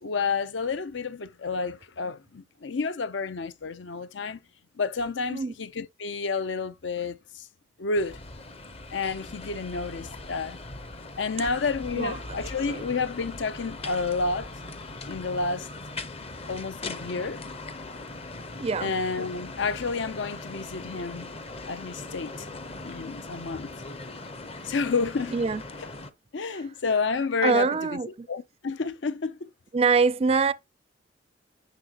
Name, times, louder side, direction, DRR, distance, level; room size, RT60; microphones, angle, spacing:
voice 1, 0.0-4.4 4.8-7.5 7.8-8.2 8.9-10.6 11.2-14.5 15.1-15.7 16.5-17.4 18.8-21.3 21.7-22.5 22.8-23.7 24.6-25.3 26.3-28.0 28.3-29.5, left 4 dB, 70° left, 0.6 m, -30 dB
sound 1, 7.9-26.1, left 2 dB, 30° left, 0.7 m, -40 dB
voice 2, 18.6-18.9 25.3-25.6 27.4-28.3 29.7-30.5, right 4 dB, 30° right, 0.4 m, -24 dB
10.5 x 5.8 x 2.9 m
head